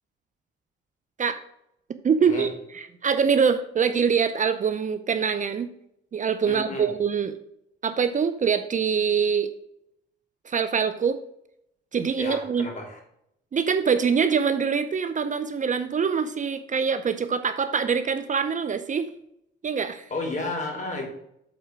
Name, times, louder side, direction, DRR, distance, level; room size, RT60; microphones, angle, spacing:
voice 1, 2.0-5.7 6.1-7.3 7.8-9.5 10.5-11.2 11.9-12.7 13.5-19.1 19.6-20.1, right 6 dB, 40° right, 11 dB, 0.7 m, -24 dB
voice 2, 6.4-6.9 12.2-13.0 20.1-21.1, left 2 dB, 40° left, 0 dB, 3.5 m, -32 dB
8.1 x 4.3 x 6.0 m, 0.78 s
cardioid pair, 90°, 20 cm